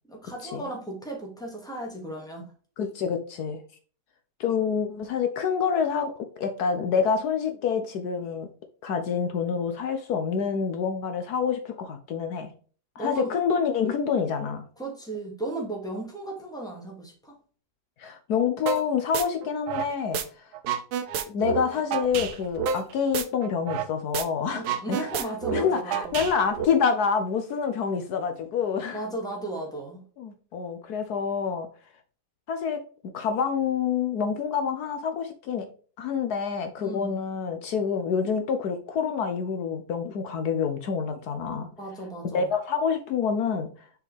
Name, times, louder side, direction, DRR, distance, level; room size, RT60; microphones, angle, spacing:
voice 1, 0.1-2.5 13.0-13.4 14.8-17.3 24.5-26.1 28.9-30.0 36.8-37.2 41.8-42.5, right 2 dB, ahead, 2.2 m, -35 dB
voice 2, 2.8-3.6 4.4-8.5 8.8-12.5 13.0-14.7 18.0-20.5 21.3-25.1 25.5-29.0 30.2-31.7 32.5-32.8 33.1-35.6 36.0-41.7 42.3-43.7, left 6 dB, 70° left, 1.3 m, -27 dB
sound 1, 18.7-18.8 19.1-20.2 20.5-23.9 24.1-24.2 24.5-26.6, right 7 dB, 75° right, 1.3 m, -29 dB
6.7 x 4.8 x 3.4 m
omnidirectional pair, 1.8 m